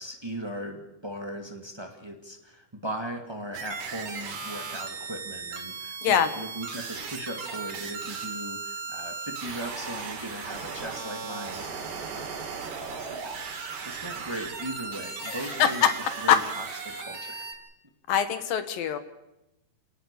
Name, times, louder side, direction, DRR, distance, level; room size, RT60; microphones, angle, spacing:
voice 1, 0.0-12.3 13.0-15.8 16.2-17.5, right 1 dB, 45° right, 4 dB, 0.3 m, -38 dB
sound 1, 3.5-17.5, right 5 dB, 75° right, 5.0 m, -37 dB
voice 2, 15.2-15.9 16.3-16.4 18.1-19.0, left 9 dB, 70° left, 12 dB, 2.6 m, -23 dB
27.5 x 18.5 x 6.8 m, 0.91 s
omnidirectional pair, 4.7 m